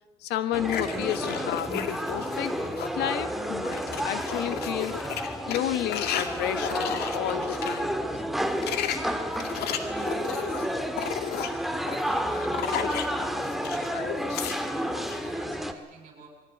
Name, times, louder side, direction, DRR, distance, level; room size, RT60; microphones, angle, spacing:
voice 1, 0.2-1.7 2.1-2.6 2.9-5.1 5.5-8.0 13.9-14.4, left 12 dB, 90° left, 11 dB, 1.5 m, -31 dB
sound 1, 0.5-15.7, equal, ahead, 2.0 m, -31 dB
sound 2, 0.7-3.0 3.4-7.8 8.4-13.9 14.1-15.2, left 8 dB, 70° left, 2.1 m, -34 dB
voice 2, 13.6-14.6 15.2-16.3, right 4 dB, 40° right, 2 dB, 6.8 m, -50 dB
22.5 x 16.5 x 9.3 m, 1.2 s
cardioid pair, 110°, 17 cm